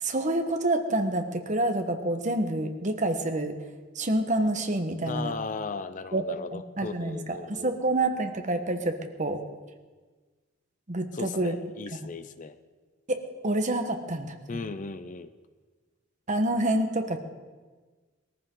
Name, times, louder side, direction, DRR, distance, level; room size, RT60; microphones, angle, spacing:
voice 1, 0.0-3.5 3.9-5.3 6.1-6.2 6.5-9.4 10.9-11.5 13.1-14.6 16.3-17.2, right 1 dB, 40° right, 6 dB, 1.3 m, -28 dB
voice 2, 5.1-7.7 11.1-12.6 14.5-15.3, left 4 dB, 40° left, 12 dB, 0.6 m, -37 dB
21.0 x 14.5 x 3.8 m, 1.4 s
head